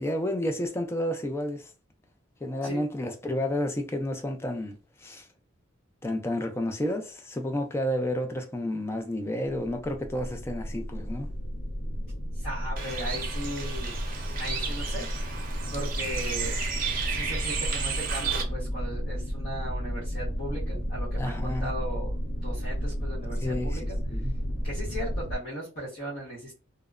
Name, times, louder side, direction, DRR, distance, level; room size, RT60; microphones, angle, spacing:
voice 1, 0.0-1.7 2.4-5.3 6.0-11.3 21.2-21.6 23.4-23.8 24.1-24.4, left 1 dB, 15° left, 0.3 m, -31 dB
sound 1, 9.4-25.4, equal, 75° left, 0.6 m, -32 dB
voice 2, 12.3-14.0 14.4-15.1 15.7-16.5 17.1-24.0 24.6-26.5, right 1 dB, 55° left, 1.0 m, -37 dB
Bird, 12.8-18.4, right 6 dB, 45° right, 0.6 m, -33 dB
2.9 x 2.0 x 2.4 m
head